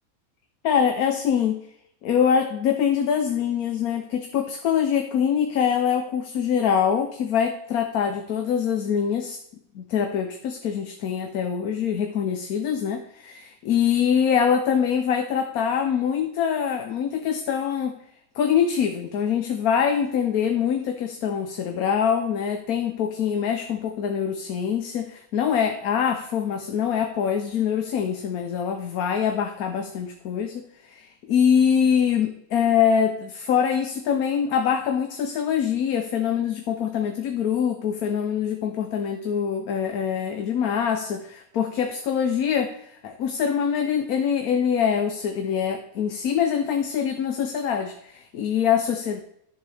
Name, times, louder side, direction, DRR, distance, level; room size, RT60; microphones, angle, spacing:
voice 1, 0.6-1.6 2.0-9.4 9.7-18.0 18.4-30.5 30.9-49.2, left 8 dB, 90° left, 5 dB, 1.3 m, -24 dB
13.5 x 7.3 x 3.4 m, 0.75 s
omnidirectional pair, 1.5 m